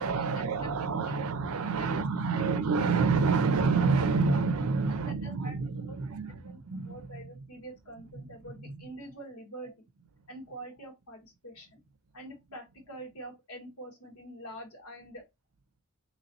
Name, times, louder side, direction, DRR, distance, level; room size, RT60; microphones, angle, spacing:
voice 1, 0.0-7.2 8.1-8.7, right 4 dB, 75° right, 0.5 m, -28 dB
voice 2, 5.1-5.6 5.8-5.9 6.4-6.6 6.9-9.7 10.3-11.8 12.1-15.2, right 1 dB, 85° left, 1.5 m, -45 dB
4.1 x 3.0 x 2.8 m
head